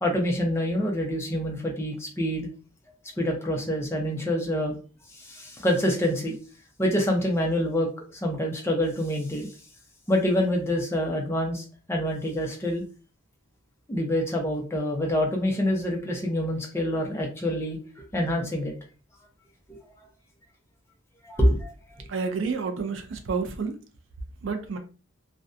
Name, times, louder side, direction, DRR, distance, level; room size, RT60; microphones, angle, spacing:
voice 1, 0.0-2.5 3.2-4.7 5.2-6.3 6.8-9.5 10.1-12.8 13.9-17.8 18.1-18.7 21.2-21.7, equal, 15° left, 0.5 m, -26 dB
voice 2, 22.1-23.8 24.4-24.8, right 5 dB, 65° right, 0.4 m, -29 dB
2.5 x 2.2 x 2.4 m
head